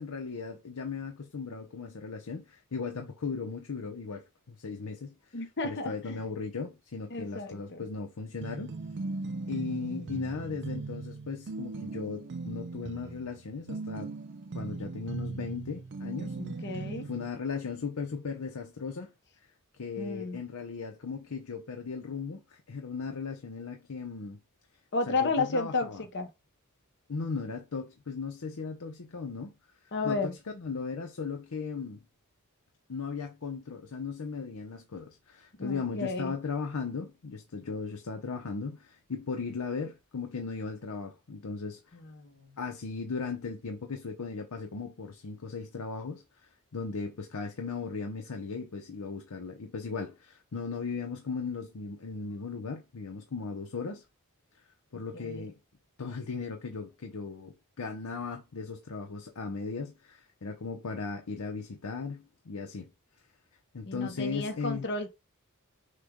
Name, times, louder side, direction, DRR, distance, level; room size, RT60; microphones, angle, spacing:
voice 1, 0.0-8.7 9.5-14.1 14.5-16.4 16.7-19.1 19.8-24.4 25.1-26.0 27.1-29.5 30.0-32.0 32.9-42.0 42.6-54.0 54.9-55.5 56.0-62.9 63.7-64.9, left 4 dB, 85° left, 0.7 m, -37 dB
voice 2, 5.3-6.2 7.1-7.8 9.9-10.2 16.4-17.1 20.0-20.4 24.9-26.3 29.9-30.3 35.6-36.3 41.9-42.6 55.1-55.5 63.9-65.1, left 3 dB, 55° left, 0.9 m, -33 dB
sound 1, 8.4-17.3, right 3 dB, 55° right, 0.5 m, -39 dB
6.5 x 2.3 x 3.6 m
head